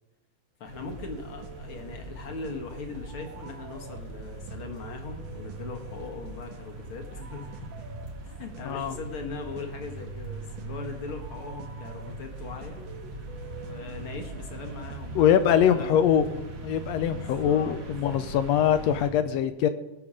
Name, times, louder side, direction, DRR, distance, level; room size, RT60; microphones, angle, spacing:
voice 1, 0.6-7.7 8.2-12.8 13.6-16.0 17.1-17.8 18.6-18.8, left 4 dB, 55° left, 3 dB, 1.8 m, -40 dB
sound 1, 0.6-19.1, right 2 dB, 75° right, 3.4 m, -41 dB
sound 2, 0.8-15.1, right 3 dB, 55° right, 1.4 m, -46 dB
voice 2, 8.6-9.0 15.1-16.3 16.6-19.7, left 9 dB, 80° left, 11 dB, 1.6 m, -23 dB
19.0 x 6.9 x 4.9 m, 1.1 s
omnidirectional pair, 3.4 m